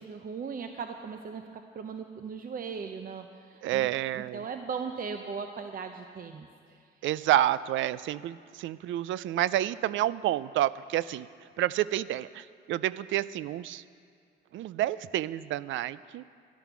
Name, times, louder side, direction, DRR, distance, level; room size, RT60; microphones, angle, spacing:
voice 1, 0.0-6.8, right 5 dB, 45° right, 6 dB, 0.7 m, -38 dB
voice 2, 3.6-4.4 7.0-11.3 11.6-13.8 14.5-16.2, right 13 dB, 75° right, 18 dB, 0.4 m, -29 dB
12.5 x 11.0 x 6.1 m, 2.3 s
cardioid pair, 90°, 20 cm